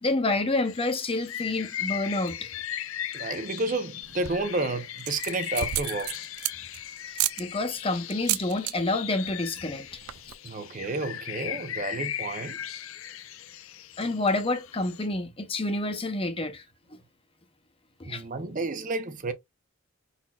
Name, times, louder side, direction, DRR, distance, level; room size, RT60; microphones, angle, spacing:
voice 1, 0.0-2.5 7.4-10.0 14.0-16.6 18.0-18.2, left 2 dB, 25° left, 0.8 m, -28 dB
sound 1, 0.6-15.1, left 11 dB, 75° left, 0.5 m, -38 dB
voice 2, 3.1-6.3 10.4-12.6 18.1-19.3, right 2 dB, 40° right, 0.6 m, -31 dB
sound 2, 4.0-4.5 5.0-6.8 7.1-7.4 8.1-8.7 9.0-9.3 9.6-9.7 9.9-10.3, right 14 dB, 90° right, 0.4 m, -31 dB
5.4 x 4.1 x 2.3 m
head